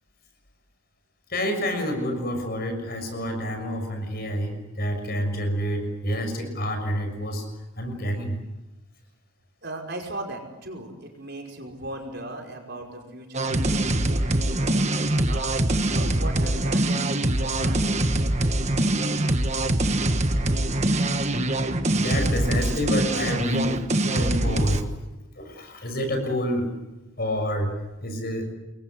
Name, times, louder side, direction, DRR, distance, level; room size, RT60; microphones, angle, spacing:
voice 1, 1.3-7.4 7.8-8.4 22.0-23.8 24.0-24.8 25.3-26.7 27.2-27.7 28.0-28.5, equal, 45° left, 5 dB, 6.5 m, -28 dB
voice 2, 9.6-14.9 15.3-18.1, right 1 dB, 50° right, 1 dB, 5.4 m, -38 dB
sound 1, 13.3-24.8, right 1 dB, 30° right, 1.4 m, -23 dB
sound 2, 19.8-23.9, left 1 dB, 75° left, 5.0 m, -45 dB
28.0 x 22.0 x 7.9 m, 1.0 s
head